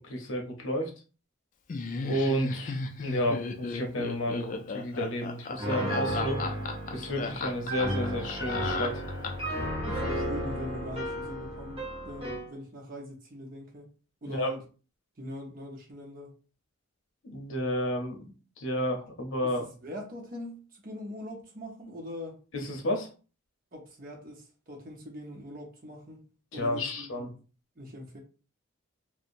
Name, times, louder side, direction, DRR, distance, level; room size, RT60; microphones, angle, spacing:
voice 1, 0.1-0.9 2.0-6.4 6.9-9.0 14.3-14.5 17.2-19.6 22.5-23.1 26.5-27.3, equal, 65° left, 0.7 m, -31 dB
Laughter, 1.7-9.6, left 4 dB, 40° left, 0.3 m, -35 dB
Piano, 5.6-12.5, right 1 dB, 25° right, 1.0 m, -33 dB
voice 2, 9.9-13.9 14.2-14.6 15.2-16.4 19.4-22.4 23.7-26.2 26.5-27.3 27.8-28.2, left 1 dB, 40° right, 0.7 m, -42 dB
2.8 x 2.0 x 2.5 m
head